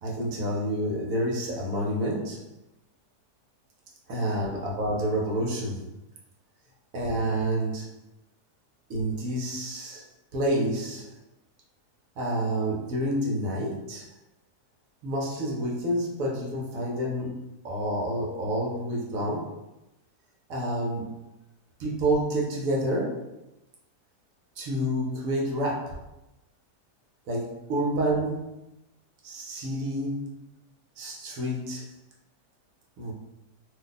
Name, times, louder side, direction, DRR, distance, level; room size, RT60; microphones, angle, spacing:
voice 1, 0.0-2.4 4.1-5.9 6.9-7.9 8.9-10.0 10.3-11.1 12.2-14.1 15.0-17.4 17.6-19.6 20.5-21.2 21.8-23.3 24.6-26.0 27.3-28.5 29.2-30.4 31.0-31.9 33.0-33.1, right 1 dB, 65° right, -2 dB, 1.0 m, -29 dB
2.8 x 2.2 x 3.9 m, 0.93 s
omnidirectional pair, 1.7 m